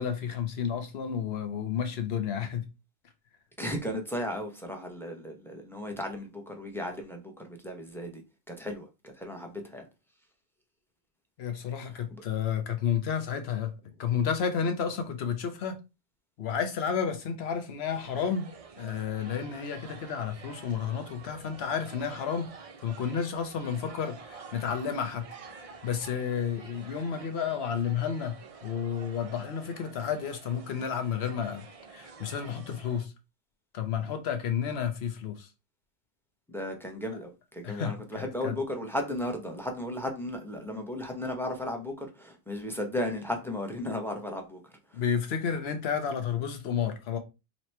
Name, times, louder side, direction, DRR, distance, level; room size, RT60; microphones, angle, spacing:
voice 1, 0.0-2.7 11.4-13.7 14.0-15.8 16.4-18.5 18.8-25.3 25.6-33.1 33.7-35.5 37.6-38.6 44.9-47.2, left 7 dB, 65° left, 1.0 m, -31 dB
voice 2, 3.6-8.2 8.5-9.8 12.1-12.2 36.5-45.0, left 1 dB, ahead, 0.7 m, -35 dB
sound 1, 17.8-33.0, right 5 dB, 50° right, 0.4 m, -49 dB
3.0 x 3.0 x 4.3 m
omnidirectional pair, 1.2 m